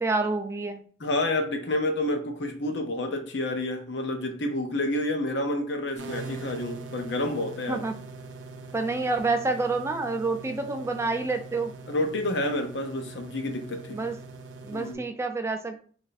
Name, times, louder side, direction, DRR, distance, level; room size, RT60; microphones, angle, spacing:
voice 1, 0.0-0.8 7.7-7.9 8.7-11.7 13.9-14.2 14.6-15.8, right 3 dB, 15° right, 6 dB, 0.4 m, -28 dB
voice 2, 1.0-7.9 11.9-14.0 14.7-15.1, left 1 dB, 75° left, 5 dB, 0.7 m, -29 dB
sound 1, 6.0-14.9, right 3 dB, 85° right, 0.5 m, -42 dB
3.2 x 2.6 x 3.9 m, 0.43 s
head